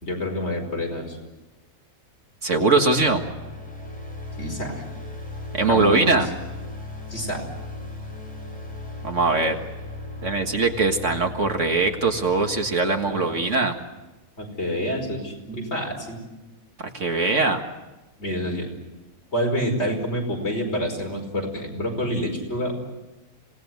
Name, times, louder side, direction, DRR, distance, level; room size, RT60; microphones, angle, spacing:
voice 1, 0.0-1.2 4.4-4.8 5.7-6.2 7.1-7.4 13.1-13.2 14.4-16.2 18.2-18.7 19.3-22.7, equal, 45° left, 1 dB, 5.3 m, -27 dB
sound 1, 2.4-13.5, left 2 dB, 5° left, 6.0 m, -38 dB
voice 2, 2.4-3.2 5.5-6.3 9.0-9.6 10.2-13.7 16.8-17.6, right 3 dB, 55° right, 5 dB, 2.1 m, -21 dB
26.5 x 18.5 x 9.5 m, 1.1 s
omnidirectional pair, 1.5 m